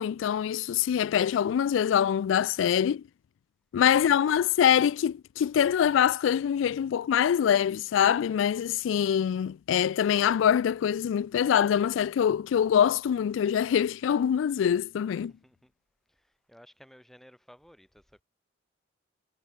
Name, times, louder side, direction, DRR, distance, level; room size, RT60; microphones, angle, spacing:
voice 1, 0.0-3.0 3.7-15.3, left 9 dB, 80° left, 0.3 m, -24 dB
voice 2, 3.9-4.3 15.1-15.7 16.1-18.2, equal, ahead, 3.7 m, -56 dB
head